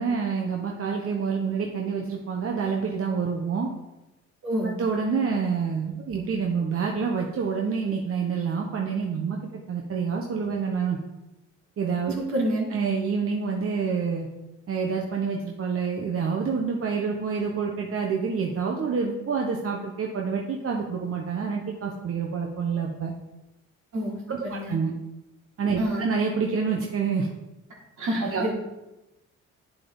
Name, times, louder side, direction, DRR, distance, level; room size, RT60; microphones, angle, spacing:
voice 1, 0.0-3.7 4.8-9.4 9.7-11.0 11.8-12.1 12.7-14.3 14.7-23.1 24.3-24.9 25.6-27.3 28.3-28.5, right 5 dB, 45° right, 0 dB, 1.2 m, -27 dB
voice 2, 4.4-4.7 12.2-12.7 23.9-24.8 25.8-26.0 28.0-28.5, equal, 70° right, -4 dB, 3.5 m, -28 dB
9.6 x 7.4 x 4.0 m, 1.0 s
cardioid pair, 90°, 30 cm